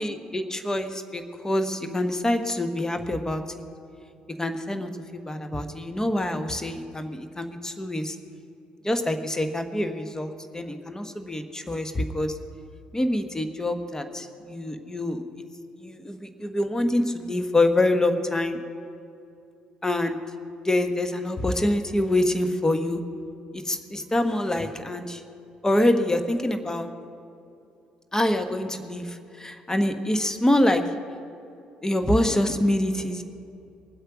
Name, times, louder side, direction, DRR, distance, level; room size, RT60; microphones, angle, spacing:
voice 1, 0.0-3.6 4.3-8.2 8.8-12.4 12.9-15.2 15.8-18.6 19.8-20.2 20.6-23.0 23.5-25.2 25.6-26.9 28.1-30.8 31.8-33.2, left 1 dB, 15° left, 8 dB, 1.2 m, -26 dB
21.5 x 8.0 x 6.1 m, 2.6 s
figure-of-eight pair, 50°, 4 cm